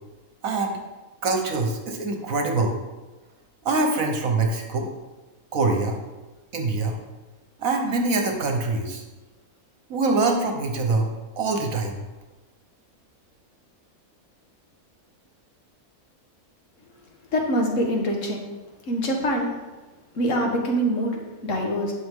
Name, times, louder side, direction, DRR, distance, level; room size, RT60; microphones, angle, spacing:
voice 1, 0.4-0.8 1.2-2.8 3.6-4.9 5.5-6.0 6.5-7.0 7.6-9.0 9.9-12.0, right 3 dB, 65° right, 3 dB, 1.5 m, -24 dB
voice 2, 17.3-18.4 18.9-19.5 20.2-21.9, equal, 55° left, 1 dB, 1.8 m, -24 dB
11.0 x 6.4 x 3.7 m, 1.2 s
omnidirectional pair, 1.6 m